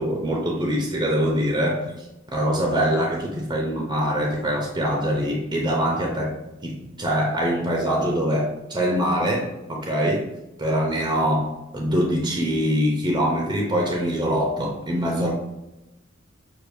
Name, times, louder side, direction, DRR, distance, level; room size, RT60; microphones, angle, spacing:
voice 1, 0.0-2.1 2.3-6.4 6.6-10.3 10.6-15.3, equal, 20° right, 0 dB, 0.7 m, -24 dB
6.5 x 2.6 x 2.6 m, 0.96 s
head